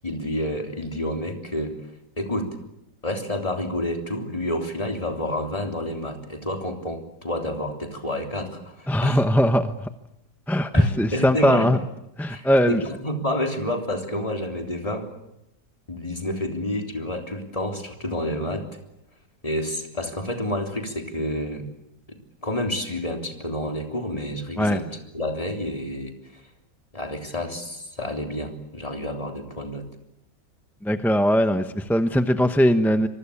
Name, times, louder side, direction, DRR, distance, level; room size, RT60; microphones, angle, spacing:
voice 1, 0.0-1.8 2.2-2.6 3.0-9.2 10.7-11.8 12.3-15.1 15.9-18.7 19.4-21.6 22.1-24.9 25.1-26.4 26.9-29.9, left 1 dB, 20° left, 3 dB, 3.5 m, -29 dB
voice 2, 8.9-9.8 10.5-11.8 12.2-12.8 24.6-24.8 30.8-33.1, equal, ahead, 8 dB, 0.7 m, -20 dB
25.5 x 24.0 x 8.6 m, 0.84 s
omnidirectional pair, 1.7 m